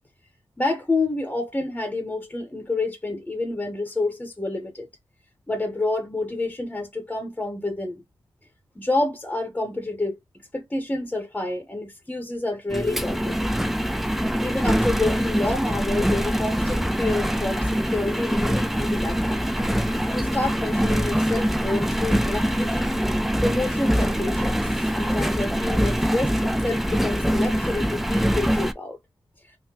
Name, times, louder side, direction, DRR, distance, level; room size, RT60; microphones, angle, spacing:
voice 1, 0.6-4.9 5.5-8.0 8.8-10.2 10.5-13.5 14.4-19.5 20.1-23.0 23.4-29.0, left 2 dB, 15° left, 0.7 m, -28 dB
Engine, 12.7-28.7, equal, 5° right, 0.3 m, -24 dB
3.5 x 2.1 x 2.8 m
wide cardioid pair, 110°, 9 cm